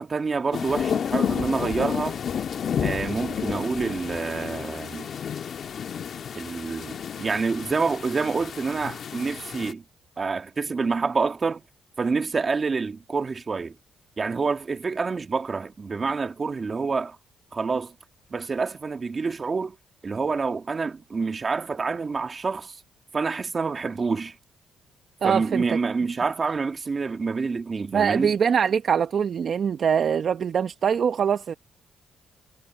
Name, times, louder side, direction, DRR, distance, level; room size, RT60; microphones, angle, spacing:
voice 1, 0.0-2.2 2.8-5.1 6.4-9.8 10.2-11.6 12.0-13.8 14.2-17.2 17.5-17.9 18.3-19.7 20.0-22.8 23.1-24.4 25.2-28.3, right 4 dB, 35° right, 2.2 m, -27 dB
sound 1, 0.5-9.7, left 8 dB, 55° left, 1.5 m, -31 dB
voice 2, 25.2-25.8 27.9-31.5, right 7 dB, 55° right, 0.8 m, -23 dB
cardioid pair, 90°, 0 cm